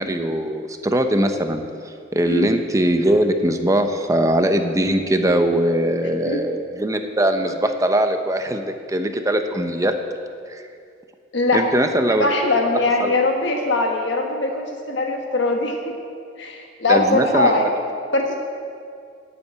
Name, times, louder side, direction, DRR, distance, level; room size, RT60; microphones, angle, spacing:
voice 1, 0.0-9.9 10.5-10.6 11.5-12.3 13.0-13.2 16.9-17.5, right 1 dB, 15° right, 6 dB, 0.7 m, -21 dB
voice 2, 11.3-11.6 12.2-15.7 16.4-17.6 18.1-18.3, left 2 dB, 65° left, 2 dB, 1.4 m, -21 dB
11.5 x 8.6 x 8.1 m, 2.3 s
head